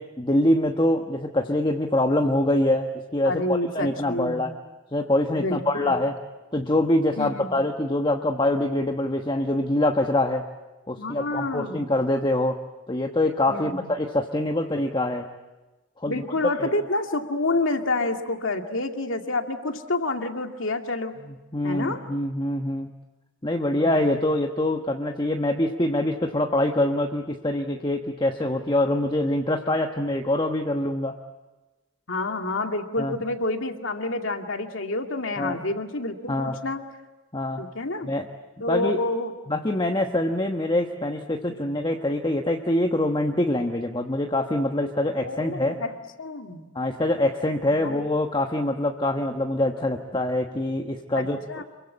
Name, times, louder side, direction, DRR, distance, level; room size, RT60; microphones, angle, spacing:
voice 1, 0.0-4.5 4.9-6.1 6.5-10.4 10.9-12.6 12.9-15.3 16.0-16.2 16.6-16.7 21.5-22.9 23.4-31.2 33.0-33.2 35.4-35.6 36.3-36.6 37.3-37.6 38.0-38.3 38.7-39.0 39.5-45.8 46.7-51.4, left 1 dB, 20° left, 3 dB, 1.2 m, -24 dB
voice 2, 3.3-4.5 5.3-5.9 7.2-7.6 11.0-11.9 13.5-13.9 16.1-21.2 21.6-22.0 23.8-24.2 32.1-36.8 37.6-38.1 38.6-39.3 45.2-45.9 46.2-46.6 47.6-48.0 51.2-51.6, left 2 dB, 65° left, 5 dB, 2.4 m, -28 dB
27.5 x 23.5 x 8.6 m, 1.1 s
head